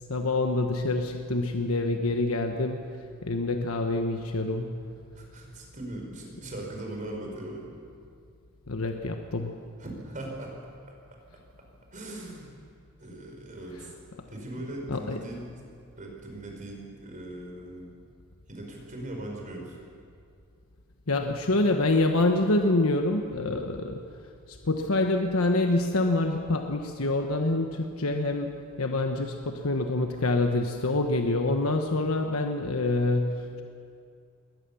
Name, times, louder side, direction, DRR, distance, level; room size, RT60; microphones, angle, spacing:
voice 1, 0.1-2.8 3.2-4.8 8.7-9.6 14.9-15.2 21.1-24.0 24.5-33.6, left 2 dB, 85° left, 4 dB, 1.2 m, -26 dB
voice 2, 5.1-7.7 9.8-10.5 11.9-12.5 13.0-13.9 14.3-15.5 16.0-17.9 18.5-19.8, right 1 dB, 40° right, 0 dB, 5.0 m, -39 dB
22.0 x 18.5 x 7.1 m, 2.4 s
head